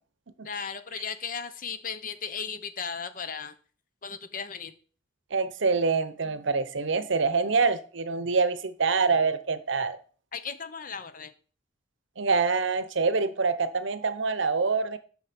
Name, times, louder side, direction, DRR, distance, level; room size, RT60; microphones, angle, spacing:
voice 1, 0.4-3.5 4.0-4.7 10.3-11.3, left 6 dB, 45° left, 12 dB, 0.8 m, -36 dB
voice 2, 5.3-10.0 12.2-15.0, right 4 dB, 70° right, 14 dB, 0.8 m, -25 dB
7.9 x 6.1 x 5.9 m, 0.41 s
head